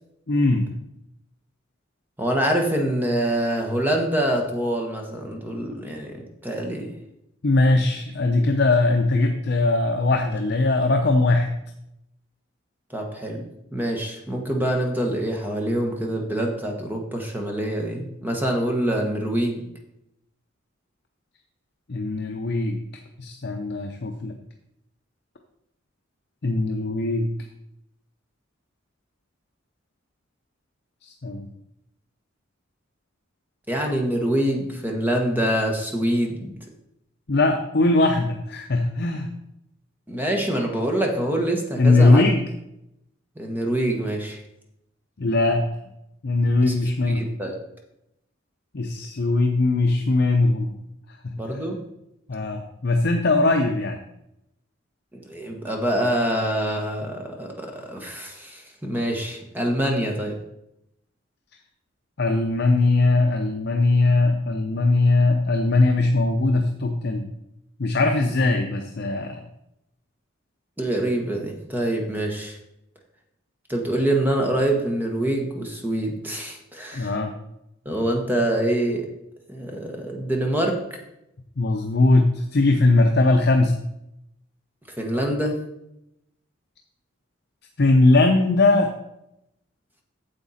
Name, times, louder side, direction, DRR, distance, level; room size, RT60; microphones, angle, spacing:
voice 1, 0.3-0.7 7.4-11.5 21.9-22.8 23.2-24.4 26.4-27.3 31.0-31.5 37.3-39.3 41.8-42.4 45.2-45.6 46.2-47.2 48.7-50.8 51.2-51.6 52.3-54.0 62.2-67.3 67.8-69.4 76.9-77.3 81.6-83.8 87.8-88.9, left 2 dB, 55° left, 3 dB, 0.7 m, -20 dB
voice 2, 2.2-6.9 12.9-13.4 13.7-19.6 33.7-36.5 40.1-42.2 43.4-44.4 46.6-46.7 47.1-47.6 51.4-51.8 55.2-60.4 70.8-72.6 73.7-77.1 77.8-79.1 79.5-80.8 85.0-85.6, right 1 dB, 10° right, 1 dB, 1.3 m, -25 dB
8.9 x 7.2 x 4.2 m, 0.83 s
head